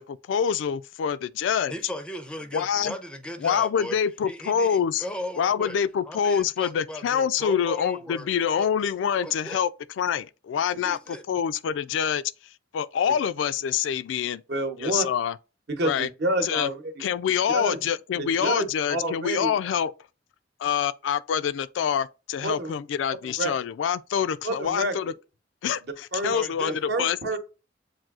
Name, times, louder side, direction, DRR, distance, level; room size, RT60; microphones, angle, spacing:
voice 1, 0.0-1.7 2.5-3.0 3.4-5.0 5.4-9.7 10.0-14.4 14.8-15.4 15.8-16.1 16.4-16.7 17.0-19.9 20.6-25.1 25.6-27.2, left 8 dB, 80° left, 0.3 m, -26 dB
voice 2, 1.7-4.0 4.3-5.8 6.1-8.7 9.2-9.6 10.8-11.2 26.3-26.8, left 1 dB, 5° left, 0.4 m, -37 dB
voice 3, 14.5-15.1 15.7-17.0 17.5-17.8 18.2-19.5 22.4-22.7 23.4-23.5 24.4-25.1 26.1-26.3 26.9-27.4, right 1 dB, 60° right, 0.9 m, -28 dB
7.3 x 2.6 x 2.4 m
head